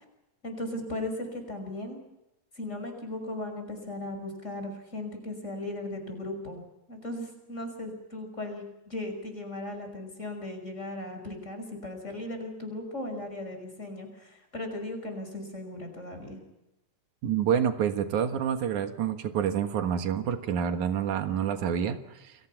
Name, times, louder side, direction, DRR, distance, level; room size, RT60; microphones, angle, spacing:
voice 1, 0.4-2.0 2.6-6.6 6.9-16.4, left 1 dB, 25° left, 5 dB, 6.0 m, -37 dB
voice 2, 17.2-22.3, right 8 dB, 85° right, 7 dB, 3.0 m, -28 dB
29.5 x 22.0 x 5.9 m, 0.90 s
omnidirectional pair, 3.4 m